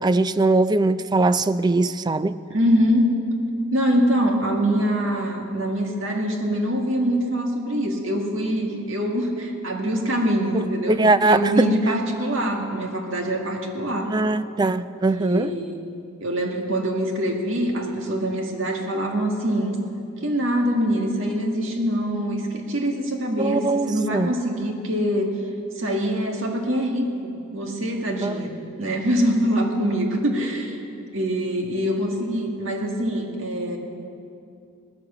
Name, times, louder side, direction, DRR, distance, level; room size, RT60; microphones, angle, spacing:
voice 1, 0.0-2.4 10.5-11.7 14.1-15.5 23.4-24.3 28.2-28.4, right 2 dB, 20° right, 13 dB, 0.3 m, -21 dB
voice 2, 2.5-3.1 3.7-14.1 15.1-15.8 16.2-19.8 20.2-25.3 25.8-30.8 31.1-33.8, equal, 65° right, 1 dB, 1.9 m, -24 dB
18.5 x 10.5 x 7.1 m, 2.6 s
head